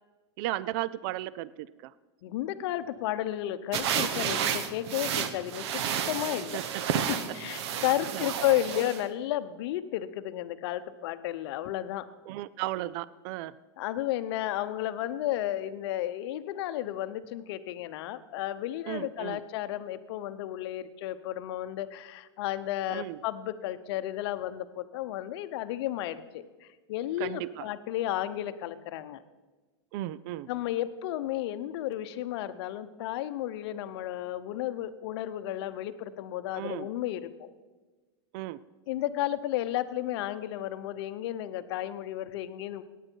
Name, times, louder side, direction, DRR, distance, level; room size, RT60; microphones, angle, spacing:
voice 1, 0.4-1.9 6.5-7.0 7.6-7.8 8.1-8.2 12.3-13.5 18.9-19.4 22.9-23.2 27.2-27.7 29.9-30.5 36.6-36.9 38.3-38.6, right 15 dB, 50° right, 19 dB, 0.4 m, -35 dB
voice 2, 2.2-6.6 7.1-12.1 13.8-29.2 30.5-37.5 38.9-42.8, left 13 dB, 60° left, 12 dB, 0.8 m, -33 dB
sound 1, 3.7-9.0, right 8 dB, 65° right, 1.1 m, -31 dB
17.5 x 9.2 x 4.6 m, 1.3 s
supercardioid pair, 130°, 15 cm